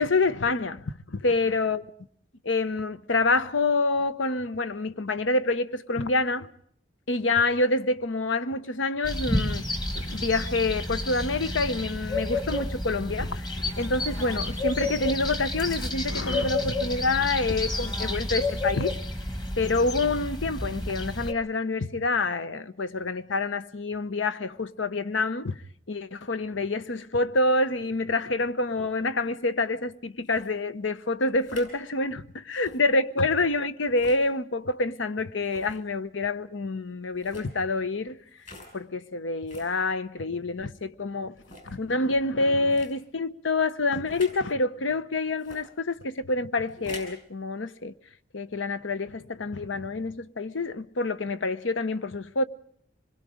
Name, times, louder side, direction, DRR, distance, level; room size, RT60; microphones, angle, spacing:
voice 1, 0.0-1.8 2.4-6.5 7.1-9.7 10.1-19.0 19.6-25.6 25.9-38.2 38.7-41.4 41.7-47.9 48.3-52.4, left 3 dB, 90° left, 1.0 m, -27 dB
sound 1, 9.0-21.3, left 2 dB, 25° left, 1.5 m, -30 dB
sound 2, 30.2-30.5 31.3-31.7 32.5-32.8 33.9-34.2 35.4-35.8 37.1-37.5 38.4-38.7 39.5-39.7 40.4-40.5 41.4-41.7 42.7-42.9 44.1-44.4 45.4-45.6 46.7-47.2, left 1 dB, 40° left, 6.2 m, -45 dB
26.0 x 21.5 x 5.0 m
head